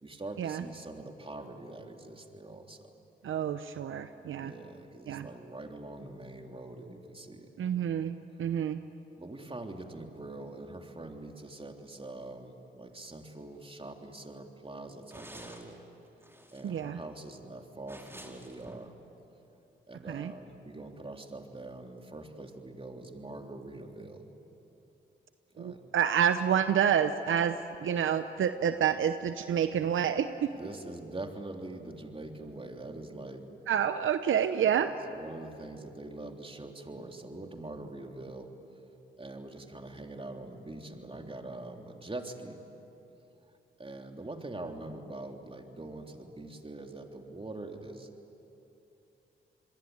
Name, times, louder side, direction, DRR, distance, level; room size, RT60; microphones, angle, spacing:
voice 1, 0.0-2.9 4.4-7.5 9.1-15.8 16.5-18.9 19.9-24.2 25.5-25.8 30.5-33.5 34.4-38.5 39.2-42.6 43.8-48.1, right 2 dB, 25° right, 3 dB, 3.4 m, -44 dB
voice 2, 3.2-4.5 5.1-5.3 7.6-8.8 16.6-17.0 20.1-20.3 25.6-30.5 33.7-34.9, right 8 dB, 75° right, 10 dB, 0.9 m, -28 dB
sound 1, 13.1-13.2 13.4-13.6 14.0-14.1 15.1-15.8 16.1-16.8 17.9-18.9, right 1 dB, 10° right, 4.6 m, -50 dB
28.0 x 22.0 x 9.6 m, 2.9 s
supercardioid pair, 50°, 21 cm